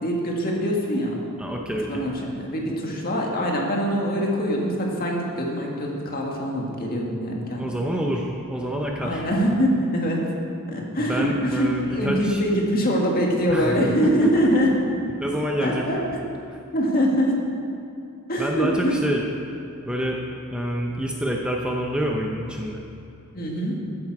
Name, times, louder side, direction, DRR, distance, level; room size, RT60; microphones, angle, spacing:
voice 1, 0.0-1.2 1.9-7.8 9.0-10.2 10.7-14.7 15.6-16.0 16.7-17.4 18.3-18.9 23.3-23.8, equal, 40° left, -1 dB, 1.9 m, -23 dB
voice 2, 1.4-2.1 7.6-9.2 11.0-12.4 13.5-14.3 15.2-16.1 18.4-19.2 19.9-20.2 20.5-22.8, equal, 5° right, 0 dB, 0.7 m, -27 dB
14.0 x 8.9 x 4.8 m, 2.7 s
head